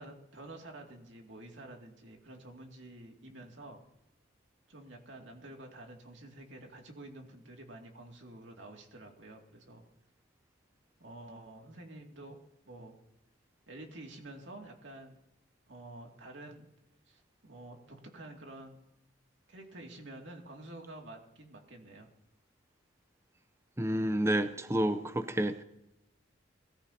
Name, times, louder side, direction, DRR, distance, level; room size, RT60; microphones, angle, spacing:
voice 1, 0.0-3.8 4.7-9.8 11.0-12.4 12.7-12.9 13.7-15.2 15.7-16.7 17.1-18.8 19.5-22.1, right 1 dB, 75° right, 2.4 m, -49 dB
voice 2, 23.8-25.6, right 1 dB, 15° right, 0.6 m, -29 dB
22.0 x 14.0 x 2.9 m
head